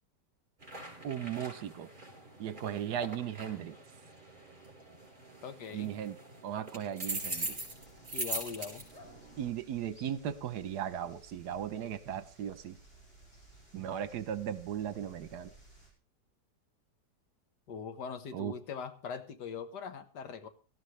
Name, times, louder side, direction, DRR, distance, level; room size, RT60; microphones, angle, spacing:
sound 1, 0.6-9.5, right 2 dB, 35° right, 4.6 m, -42 dB
voice 1, 1.0-1.9 2.4-3.7 5.7-6.2 6.4-7.6 9.4-12.8 13.7-15.5 18.3-18.5, right 9 dB, 75° right, 14 dB, 1.4 m, -37 dB
voice 2, 5.4-5.9 8.1-8.8 17.7-20.5, left 6 dB, 75° left, 10 dB, 1.7 m, -41 dB
sound 2, 7.1-15.9, right 2 dB, 40° left, 4.9 m, -59 dB
18.0 x 13.0 x 3.2 m, 0.33 s
omnidirectional pair, 1.8 m